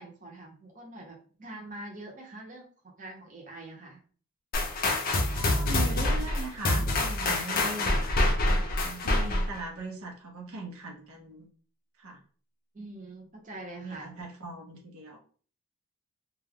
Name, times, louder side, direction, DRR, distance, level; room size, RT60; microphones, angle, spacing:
voice 1, 0.0-2.7 3.0-4.0 7.5-8.8 12.7-14.1, right 1 dB, 35° right, -1 dB, 0.7 m, -45 dB
sound 1, 4.5-9.6, left 1 dB, 40° left, 0.5 m, -26 dB
voice 2, 5.3-8.2 8.8-11.5 12.0-12.2 13.7-15.2, right 2 dB, 80° right, 1 dB, 0.7 m, -40 dB
2.3 x 2.1 x 3.4 m, 0.42 s
head